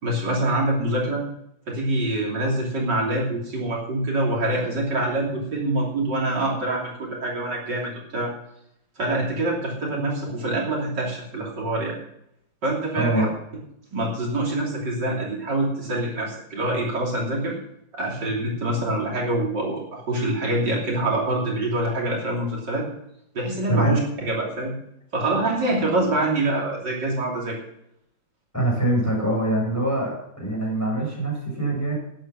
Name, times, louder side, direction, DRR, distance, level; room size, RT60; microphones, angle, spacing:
voice 1, 0.0-1.2 1.7-8.3 9.0-12.0 12.6-13.3 13.9-17.6 17.9-22.9 23.4-24.7 25.1-27.6, right 1 dB, 65° right, -2 dB, 3.6 m, -25 dB
voice 2, 13.0-13.3 23.7-24.0 28.5-32.0, right 1 dB, 10° left, -3 dB, 7.0 m, -24 dB
11.5 x 10.5 x 6.1 m, 0.75 s
omnidirectional pair, 2.1 m